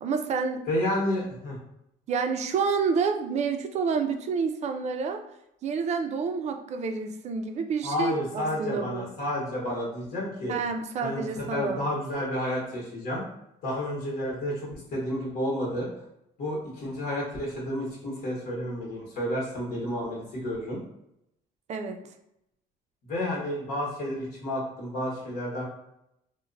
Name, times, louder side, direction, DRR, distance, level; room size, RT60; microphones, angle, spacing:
voice 1, 0.0-0.6 2.1-5.2 5.6-9.1 10.5-11.9 21.7-22.0, right 5 dB, 40° right, 6 dB, 0.4 m, -29 dB
voice 2, 0.7-1.6 7.8-10.5 11.0-13.2 13.6-15.9 16.4-20.8 23.1-25.7, left 1 dB, 60° left, -4 dB, 1.0 m, -31 dB
2.8 x 2.1 x 2.5 m, 0.81 s
cardioid pair, 110°, 17 cm